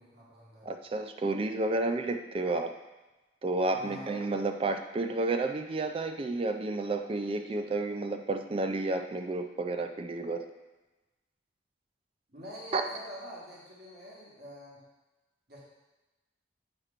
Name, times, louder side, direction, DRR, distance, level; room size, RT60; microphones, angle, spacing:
voice 1, 0.0-0.7 3.7-4.3 12.3-14.9 15.5-15.6, equal, 55° right, -6 dB, 1.4 m, -45 dB
voice 2, 0.6-2.7 3.4-10.5 12.7-12.8, right 2 dB, 30° right, 7 dB, 0.3 m, -31 dB
7.9 x 2.9 x 4.9 m, 1.1 s
head